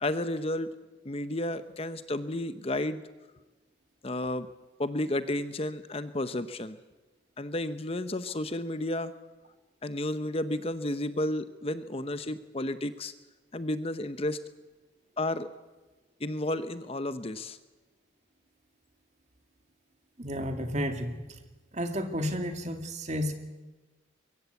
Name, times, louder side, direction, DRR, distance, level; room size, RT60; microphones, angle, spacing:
voice 1, 0.0-0.7 1.0-3.0 4.0-4.5 4.8-6.8 7.4-9.1 9.8-13.1 13.5-14.4 15.2-15.5 16.2-17.6, left 1 dB, 30° left, 12 dB, 0.8 m, -32 dB
voice 2, 20.2-21.1 21.7-23.3, equal, 35° right, 6 dB, 2.4 m, -31 dB
23.0 x 23.0 x 8.2 m, 1.2 s
head